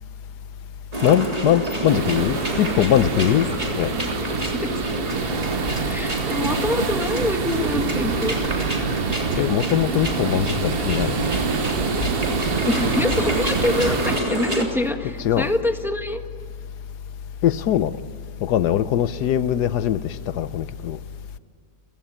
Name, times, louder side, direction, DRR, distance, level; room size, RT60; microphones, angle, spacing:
sound 1, 0.9-14.6, right 1 dB, 25° right, 3.4 m, -28 dB
voice 1, 1.0-3.5 3.8-3.9 9.4-11.3 15.2-15.5 17.4-18.0 18.4-21.0, left 11 dB, 90° left, 15 dB, 1.4 m, -21 dB
sound 2, 1.9-14.2, right 5 dB, 45° right, 1.0 m, -27 dB
voice 2, 5.8-8.4 12.6-16.2, left 2 dB, ahead, 5 dB, 1.4 m, -25 dB
30.0 x 16.5 x 8.8 m, 2.2 s
omnidirectional pair, 1.7 m